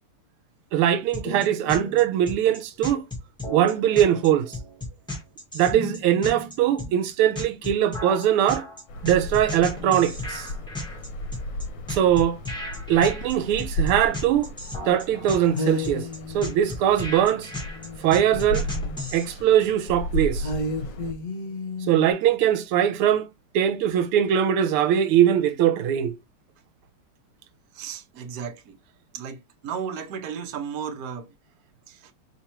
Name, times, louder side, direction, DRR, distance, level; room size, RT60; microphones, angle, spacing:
voice 1, 0.7-3.0 3.5-4.6 5.5-8.6 9.0-10.5 11.9-12.4 12.9-14.5 14.9-16.1 16.3-17.5 18.0-18.7 19.1-20.5 21.9-23.3 23.5-26.1, right 10 dB, 90° right, 1.5 m, -21 dB
sound 1, 1.1-19.2, left 1 dB, 5° left, 1.2 m, -35 dB
sound 2, 8.9-21.1, equal, 65° left, 1.4 m, -34 dB
sound 3, 15.5-19.0 19.3-19.4 20.4-22.1, left 2 dB, 45° left, 1.2 m, -34 dB
voice 2, 27.7-28.8 29.1-31.3 31.9-32.1, right 7 dB, 60° right, 1.0 m, -34 dB
4.6 x 3.5 x 2.9 m
omnidirectional pair, 2.4 m